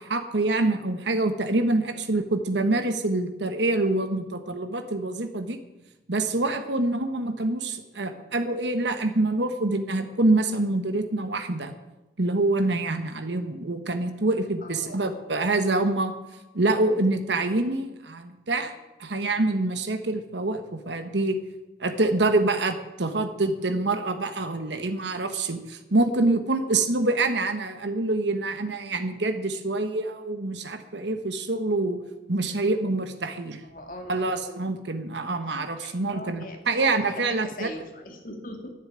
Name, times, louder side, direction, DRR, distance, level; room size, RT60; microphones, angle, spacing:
voice 1, 0.0-5.6 6.1-11.7 12.2-16.1 16.5-18.7 19.0-21.4 21.8-32.0 32.3-33.6 34.1-37.7, right 2 dB, 85° right, 8 dB, 1.3 m, -26 dB
voice 2, 14.6-14.9 33.6-34.3 35.5-38.7, left 1 dB, 50° left, 3 dB, 2.4 m, -41 dB
11.5 x 10.5 x 8.8 m, 1.0 s
head